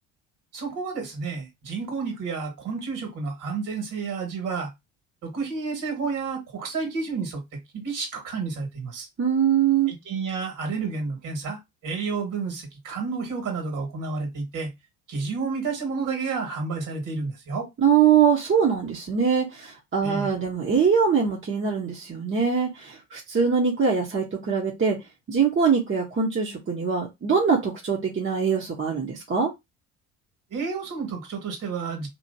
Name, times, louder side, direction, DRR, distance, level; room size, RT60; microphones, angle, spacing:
voice 1, 0.5-4.7 5.2-9.1 9.9-14.7 15.1-17.7 20.0-20.3 30.5-32.1, right 4 dB, 55° right, 2.0 m, -30 dB
voice 2, 9.2-9.9 17.8-25.0 25.3-29.5, right 6 dB, 35° right, 1.2 m, -23 dB
3.1 x 2.7 x 2.7 m
hypercardioid pair, 65°, 37 cm